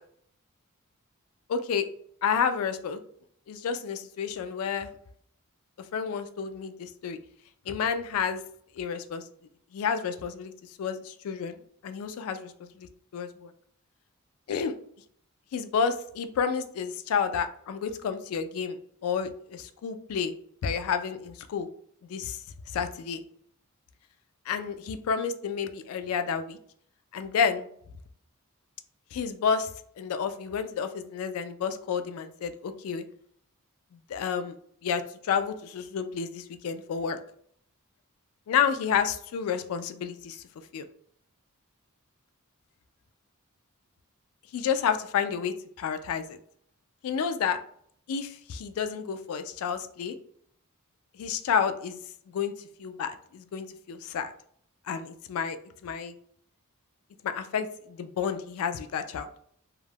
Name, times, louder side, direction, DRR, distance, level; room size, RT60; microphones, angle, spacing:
voice 1, 1.5-1.9 2.2-3.0 3.5-4.9 5.9-7.2 7.7-8.4 8.8-9.2 9.7-10.5 10.8-12.4 13.1-13.5 14.5-14.8 15.5-18.8 19.0-20.3 20.6-21.7 22.1-22.4 22.7-23.2 24.5-26.6 27.1-27.7 29.1-29.7 30.0-33.1 34.1-34.5 34.8-37.2 38.5-40.4 40.7-40.9 44.5-46.4 47.0-47.6 48.1-50.1 51.1-52.0 52.3-52.5 52.8-54.3 54.9-55.6 55.8-56.1 57.2-59.3, left 6 dB, 75° left, 9 dB, 0.3 m, -30 dB
2.3 x 2.0 x 3.3 m, 0.64 s
head